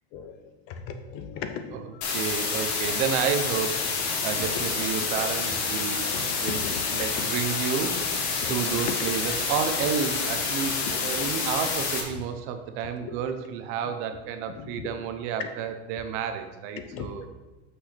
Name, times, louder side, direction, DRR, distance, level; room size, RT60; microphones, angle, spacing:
voice 1, 0.7-2.2 4.2-4.7 6.0-7.3 8.4-9.0 11.2-11.5 13.0-13.1 14.6-14.7 16.9-17.1, left 7 dB, 40° left, 8 dB, 0.8 m, -37 dB
voice 2, 1.7-6.1 6.4-17.3, right 7 dB, 40° right, 8 dB, 0.7 m, -31 dB
sound 1, 2.0-12.0, left 4 dB, 70° left, 1.9 m, -28 dB
6.3 x 5.9 x 5.7 m, 1.2 s
supercardioid pair, 155°, 34 cm